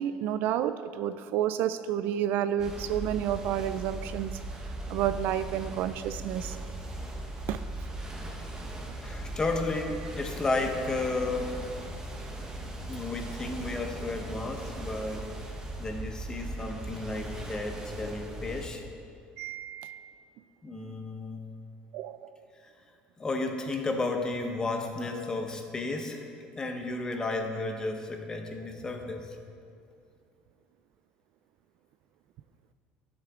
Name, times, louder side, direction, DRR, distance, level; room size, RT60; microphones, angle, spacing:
voice 1, 0.0-4.4 4.9-6.6 7.5-7.6 19.4-20.2 21.9-22.3, right 10 dB, 65° right, 12 dB, 0.4 m, -30 dB
sound 1, 2.6-18.7, right 1 dB, 20° right, 1.3 m, -39 dB
voice 2, 9.0-11.7 12.9-15.3 15.8-18.8 20.6-21.5 23.2-26.3 26.5-29.3, left 2 dB, 20° left, 4 dB, 1.1 m, -33 dB
13.0 x 8.0 x 3.7 m, 2.3 s
cardioid pair, 125°, 4 cm